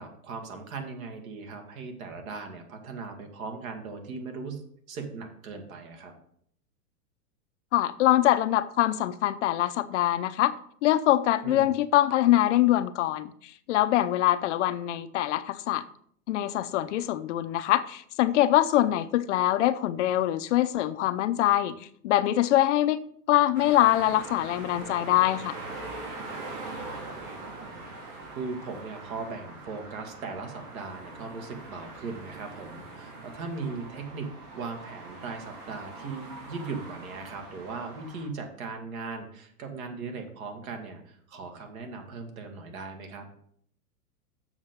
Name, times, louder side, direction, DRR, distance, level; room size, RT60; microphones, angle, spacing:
voice 1, 0.0-4.6 4.9-6.1 11.4-11.7 18.7-18.8 27.2-27.9 28.3-43.2, right 4 dB, 60° right, 2.2 m, -38 dB
voice 2, 7.7-10.5 10.8-15.8 16.3-21.8 22.0-23.0 23.3-25.5, left 14 dB, 50° left, 0.5 m, -24 dB
sound 1, 23.5-38.3, right 3 dB, 90° right, 3.5 m, -42 dB
7.3 x 6.3 x 5.2 m
hypercardioid pair, 140°, 46 cm